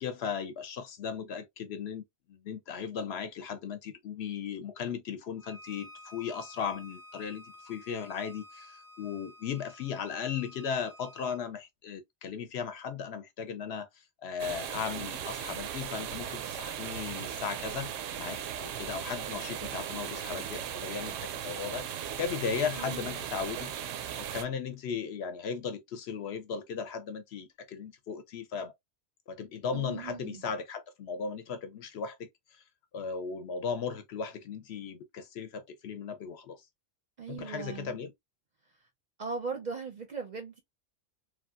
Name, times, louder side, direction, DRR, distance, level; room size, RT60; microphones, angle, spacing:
voice 1, 0.0-2.0 2.3-17.9 18.2-23.7 24.2-28.7 29.3-32.6 32.9-36.6 37.3-38.1, left 6 dB, 65° left, 0.8 m, -37 dB
Bowed string instrument, 5.4-11.4, left 1 dB, 35° left, 0.6 m, -52 dB
sound 1, 14.4-24.4, right 9 dB, 85° right, 0.9 m, -37 dB
voice 2, 22.8-23.1 29.7-30.4 37.2-38.0 39.2-40.6, right 5 dB, 50° right, 0.5 m, -38 dB
3.2 x 2.3 x 2.3 m
omnidirectional pair, 1.2 m